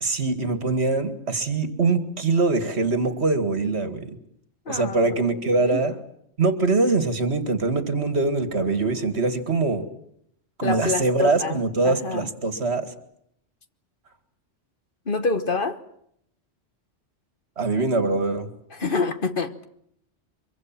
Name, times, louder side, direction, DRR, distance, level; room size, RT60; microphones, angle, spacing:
voice 1, 0.0-4.2 4.7-5.9 6.4-9.8 10.6-12.9 17.6-18.5, right 3 dB, 65° right, 2.3 m, -23 dB
voice 2, 4.6-5.9 10.6-12.3 15.0-15.8 18.7-19.7, left 3 dB, 50° left, 1.4 m, -28 dB
24.5 x 23.5 x 7.6 m
omnidirectional pair, 1.2 m